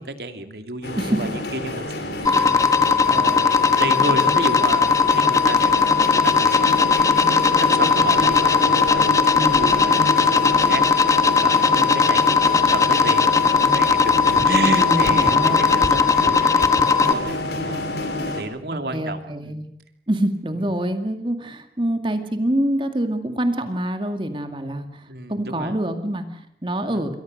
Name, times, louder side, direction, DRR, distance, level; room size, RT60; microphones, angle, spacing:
voice 1, 0.0-5.7 6.2-7.1 7.4-17.9 18.3-19.6 25.1-25.8 26.9-27.0, right 2 dB, 60° right, 7 dB, 2.8 m, -32 dB
sound 1, 0.8-18.4, left 1 dB, 65° left, 4.8 m, -28 dB
sound 2, 2.2-17.1, left 5 dB, 20° left, 1.3 m, -18 dB
voice 2, 9.3-9.7 14.5-15.7 18.7-19.6 20.1-27.2, right 1 dB, 30° right, 7 dB, 2.1 m, -26 dB
28.0 x 22.5 x 6.5 m, 0.66 s
head